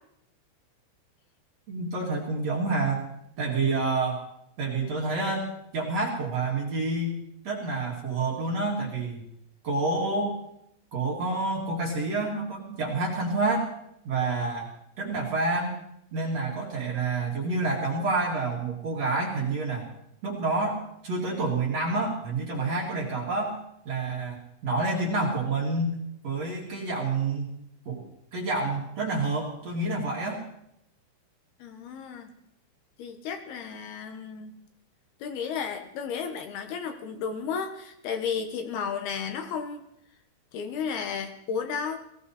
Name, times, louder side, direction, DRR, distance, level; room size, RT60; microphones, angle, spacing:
voice 1, 1.7-3.1 3.4-4.2 4.6-7.2 7.4-9.3 9.6-10.4 10.9-13.7 14.0-14.7 15.0-15.8 16.1-19.9 20.2-23.6 23.9-26.0 26.2-27.5 27.9-28.0 28.3-30.4, right 3 dB, 45° right, -2 dB, 2.7 m, -28 dB
voice 2, 31.6-32.3 33.0-34.5 35.2-39.8 40.5-42.0, left 6 dB, 70° left, 7 dB, 2.8 m, -33 dB
18.0 x 17.0 x 4.2 m, 0.78 s
omnidirectional pair, 5.3 m